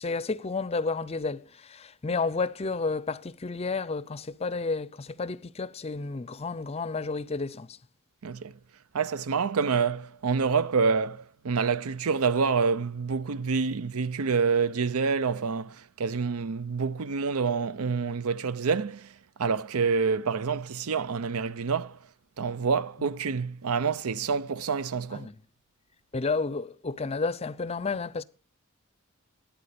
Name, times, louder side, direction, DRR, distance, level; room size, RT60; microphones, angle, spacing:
voice 1, 0.0-7.8 25.1-25.4 26.1-28.2, left 4 dB, 30° left, 0.5 m, -31 dB
voice 2, 8.2-8.5 8.9-19.1 19.4-22.0 22.4-25.3, right 5 dB, 85° right, 0.6 m, -27 dB
13.0 x 9.4 x 6.7 m
head